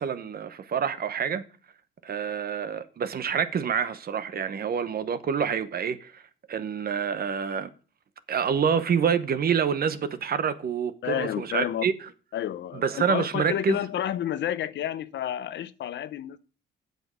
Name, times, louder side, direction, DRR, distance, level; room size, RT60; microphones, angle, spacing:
voice 1, 0.0-1.4 2.0-6.2 6.5-7.7 8.3-11.9 12.7-13.8, right 7 dB, 50° right, 0.9 m, -27 dB
voice 2, 11.0-11.8 12.3-16.4, left 11 dB, 65° left, 0.7 m, -30 dB
8.0 x 6.7 x 6.3 m
cardioid pair, 90°, 20 cm